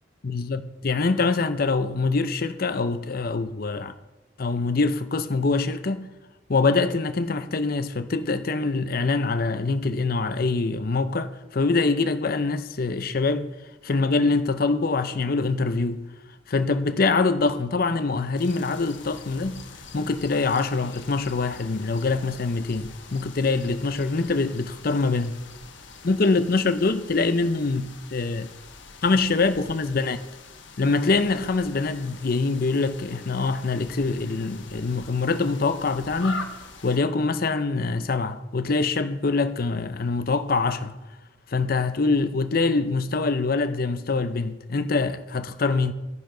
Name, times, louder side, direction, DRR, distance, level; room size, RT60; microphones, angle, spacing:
voice 1, 0.2-4.0 4.4-6.1 6.5-13.6 13.8-16.1 16.5-19.7 19.9-25.4 26.0-28.5 29.0-30.2 30.8-36.5 36.8-41.0 41.5-45.9, left 3 dB, 50° left, 0.6 m, -24 dB
sound 1, 18.4-37.0, left 4 dB, 75° left, 1.3 m, -44 dB
12.5 x 10.0 x 3.9 m
head